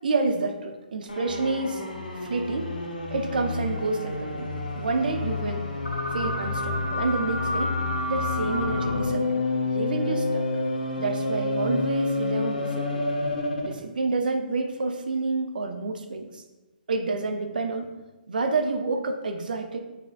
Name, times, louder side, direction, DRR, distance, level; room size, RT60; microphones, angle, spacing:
voice 1, 0.0-1.8 2.2-2.7 3.1-5.6 6.1-7.8 8.1-10.5 11.0-13.1 13.6-16.4 16.9-17.9 18.3-19.8, right 3 dB, 70° right, 6 dB, 0.6 m, -29 dB
sound 1, 1.1-13.8, left 2 dB, 90° left, 1.0 m, -29 dB
sound 2, 1.3-8.9, left 5 dB, 55° left, 0.6 m, -35 dB
5.9 x 3.5 x 2.5 m, 1.1 s
hypercardioid pair, 145°, 5 cm